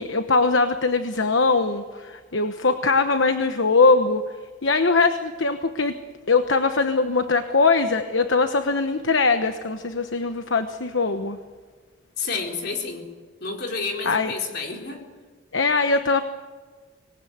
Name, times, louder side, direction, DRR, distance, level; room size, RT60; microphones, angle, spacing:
voice 1, 0.0-4.2 4.6-5.9 6.3-11.4 14.0-14.3 15.5-16.2, left 3 dB, 70° left, 8 dB, 1.1 m, -21 dB
voice 2, 12.2-13.1 13.4-15.0, left 4 dB, 50° left, 1 dB, 4.2 m, -30 dB
25.5 x 19.5 x 9.4 m, 1.5 s
head